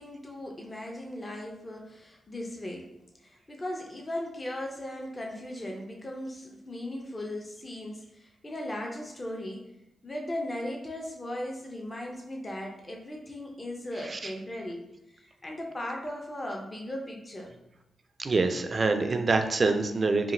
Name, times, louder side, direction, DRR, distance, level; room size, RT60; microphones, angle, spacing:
voice 1, 0.0-2.9 3.2-9.7 10.0-14.9 15.1-17.6, left 1 dB, 30° left, 0 dB, 0.5 m, -37 dB
voice 2, 18.2-20.3, right 3 dB, 45° right, 7 dB, 0.3 m, -26 dB
2.8 x 2.5 x 2.6 m, 0.89 s
supercardioid pair, 50°, 0 cm